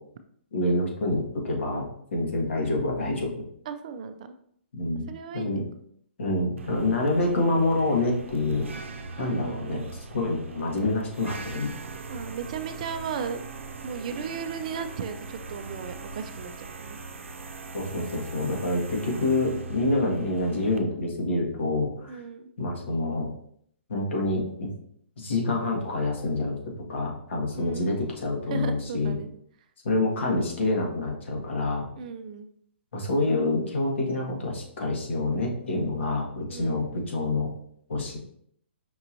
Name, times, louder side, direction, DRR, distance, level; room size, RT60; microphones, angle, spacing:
voice 1, 0.5-3.4 4.7-5.1 5.3-5.6 6.2-8.7 9.2-11.7 17.7-22.2 22.6-23.3 23.9-24.7 25.2-29.1 29.8-31.8 32.9-37.5 37.9-38.2, left 2 dB, 75° left, -1 dB, 1.6 m, -27 dB
voice 2, 3.7-4.3 5.1-5.6 9.2-9.9 12.1-13.5 13.8-17.0 22.1-22.5 27.6-28.1 28.5-29.3 32.0-32.5 36.5-36.9, right 6 dB, 40° right, 9 dB, 0.3 m, -36 dB
sound 1, 6.6-20.8, right 3 dB, 85° right, 0.6 m, -40 dB
5.2 x 2.9 x 2.6 m, 0.66 s
hypercardioid pair, 160°, 7 cm